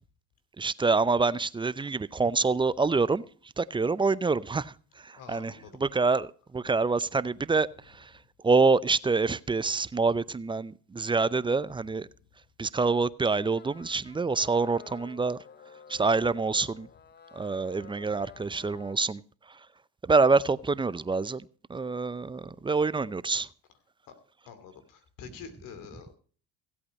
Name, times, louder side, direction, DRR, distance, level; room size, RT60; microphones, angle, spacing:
voice 1, 0.6-12.1 12.6-15.4 15.9-16.9 17.3-19.7 20.0-23.5, right 4 dB, 15° right, 0.5 m, -27 dB
voice 2, 5.2-5.8 24.1-24.2 24.5-26.1, left 7 dB, 65° left, 2.7 m, -46 dB
sound 1, 13.5-19.0, left 6 dB, 30° left, 0.9 m, -51 dB
16.0 x 8.6 x 5.3 m
supercardioid pair, 75°, 34 cm